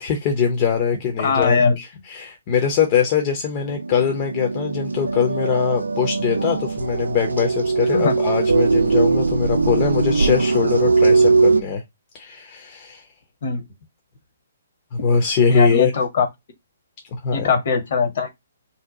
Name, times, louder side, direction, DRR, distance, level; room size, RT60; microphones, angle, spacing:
voice 1, 0.0-11.8 12.1-13.0 14.9-15.9 17.2-17.5, left 7 dB, 35° left, 0.6 m, -22 dB
voice 2, 1.2-1.8 7.9-8.1 13.4-13.6 15.5-16.3 17.3-18.3, left 5 dB, 55° left, 0.9 m, -20 dB
sound 1, 3.6-11.6, right 4 dB, 85° right, 0.4 m, -20 dB
2.7 x 2.2 x 3.6 m
figure-of-eight pair, 130°, 0 cm